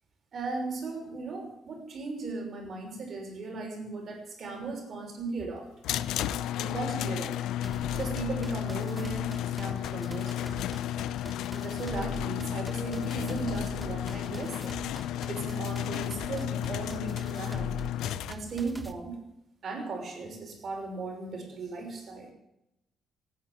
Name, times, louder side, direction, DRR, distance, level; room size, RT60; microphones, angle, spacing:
voice 1, 0.3-5.7 6.6-7.4 7.9-10.9 11.5-14.9 15.3-17.7 18.3-19.2 19.6-22.3, right 3 dB, 55° right, 2 dB, 5.8 m, -37 dB
sound 1, 5.8-18.3, left 12 dB, 85° left, 0.7 m, -33 dB
sound 2, 7.6-18.9, right 1 dB, 10° right, 1.6 m, -43 dB
17.0 x 9.4 x 8.7 m, 0.84 s
cardioid pair, 90°, 0 cm